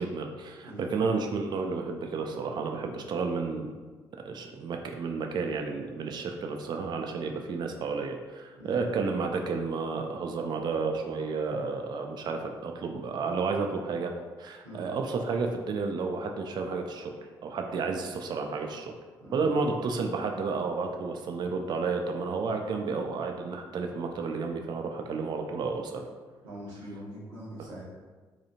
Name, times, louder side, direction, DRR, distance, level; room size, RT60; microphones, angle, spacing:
voice 1, 0.0-3.7 4.3-14.1 14.4-17.1 17.4-18.9 19.3-26.0, right 4 dB, 40° right, 4 dB, 0.3 m, -31 dB
voice 2, 19.2-19.5 26.4-27.9, equal, 75° right, -6 dB, 0.9 m, -43 dB
2.8 x 2.3 x 2.7 m, 1.4 s
figure-of-eight pair, 40°, 11 cm